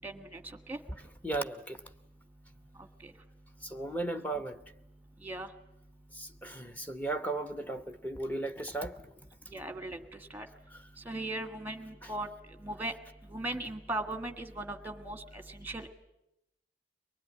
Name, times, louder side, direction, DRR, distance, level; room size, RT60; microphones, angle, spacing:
voice 1, 0.0-0.4 0.7-0.8 3.0-3.1 5.2-5.5 9.5-10.0 10.3-10.5 11.0-12.3 12.6-12.9 13.3-15.9, right 2 dB, 10° right, 1.4 m, -38 dB
voice 2, 1.2-1.8 3.6-4.6 6.1-9.0 12.0-12.1, right 2 dB, 10° left, 1.0 m, -36 dB
23.5 x 20.0 x 9.6 m
head